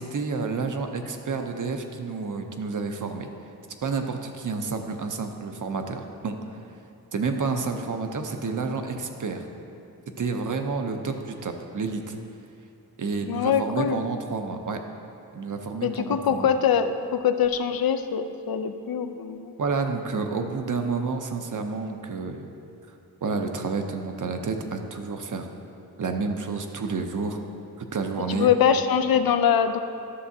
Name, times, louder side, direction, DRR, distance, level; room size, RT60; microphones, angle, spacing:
voice 1, 0.0-3.3 3.8-6.4 7.1-9.5 10.2-12.2 13.0-14.8 15.3-16.5 19.6-22.5 23.2-25.5 26.0-27.4 27.8-28.5, right 4 dB, 50° right, 5 dB, 0.6 m, -29 dB
voice 2, 13.3-14.0 15.8-19.5 28.3-29.8, left 8 dB, 65° left, 10 dB, 0.5 m, -23 dB
11.0 x 6.7 x 2.7 m, 2.7 s
wide cardioid pair, 105°, 39 cm